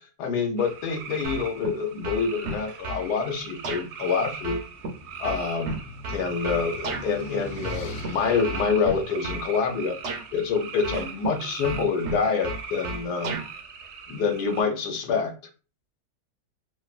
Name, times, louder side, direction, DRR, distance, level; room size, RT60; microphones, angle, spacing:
voice 1, 0.2-4.6 5.2-5.8 6.1-10.0 10.3-13.4 14.1-15.3, left 5 dB, 90° left, 4 dB, 1.3 m, -26 dB
sound 1, 0.6-14.6, right 6 dB, 80° right, 1.1 m, -41 dB
sound 2, 1.2-1.7 2.0-3.1 3.6-3.8 4.4-7.1 7.6-8.1 8.4-9.5 10.0-10.2 10.8-11.3 11.6-13.5, right 2 dB, 60° right, 0.7 m, -33 dB
sound 3, 4.6-10.6, left 3 dB, 65° left, 0.8 m, -42 dB
3.3 x 2.3 x 2.4 m, 0.34 s
omnidirectional pair, 1.7 m